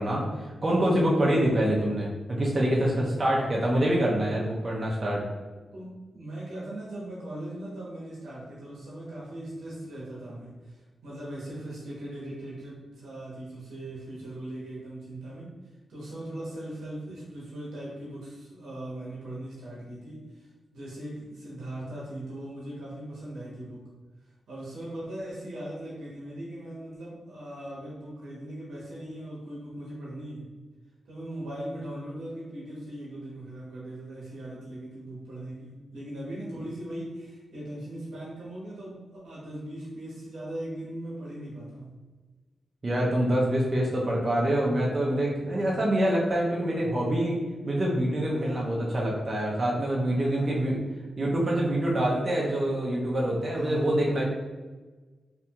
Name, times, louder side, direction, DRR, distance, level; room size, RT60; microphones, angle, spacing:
voice 1, 0.0-5.3 42.8-47.4 47.6-50.8 51.2-54.2, right 1 dB, 45° right, -4 dB, 0.6 m, -25 dB
voice 2, 5.7-15.5 15.9-23.9 24.2-30.5 31.1-42.0 45.6-45.8 48.3-48.7 50.2-50.6 53.5-53.9, right 1 dB, 90° right, -7 dB, 0.9 m, -39 dB
2.7 x 2.6 x 2.3 m, 1.3 s
cardioid pair, 50°, 0 cm